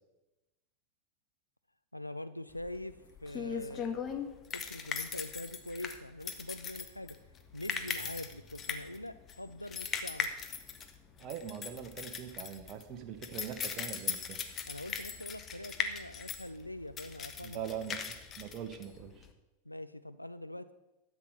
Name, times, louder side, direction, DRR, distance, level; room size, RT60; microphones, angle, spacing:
voice 1, 1.9-2.9 3.2-3.9 4.5-7.2 7.5-10.3 14.7-17.9 19.7-20.7, left 1 dB, 85° left, 12 dB, 0.4 m, -43 dB
sound 1, 2.6-19.3, left 7 dB, 25° left, 1.2 m, -39 dB
voice 2, 11.2-14.4 17.4-19.3, right 9 dB, 35° right, 7 dB, 1.5 m, -42 dB
12.0 x 8.1 x 6.7 m, 1.0 s
figure-of-eight pair, 90°, 0 cm